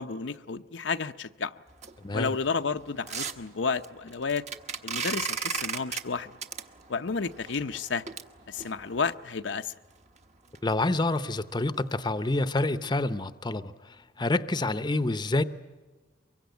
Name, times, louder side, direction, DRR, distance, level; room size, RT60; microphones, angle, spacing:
voice 1, 0.0-1.5 2.1-4.4 4.8-6.4 6.9-8.0 8.5-9.7, left 5 dB, 85° left, 8 dB, 0.7 m, -31 dB
sound 1, 1.7-9.1 9.7-9.8 10.2-10.3 10.5-10.7 11.0-11.1 11.5-11.8 12.0-12.1 12.7-12.8, right 6 dB, 40° right, 1.2 m, -37 dB
voice 2, 2.0-2.3 10.6-15.4, left 2 dB, 25° left, 12 dB, 0.7 m, -28 dB
23.5 x 23.0 x 9.2 m, 1.3 s
head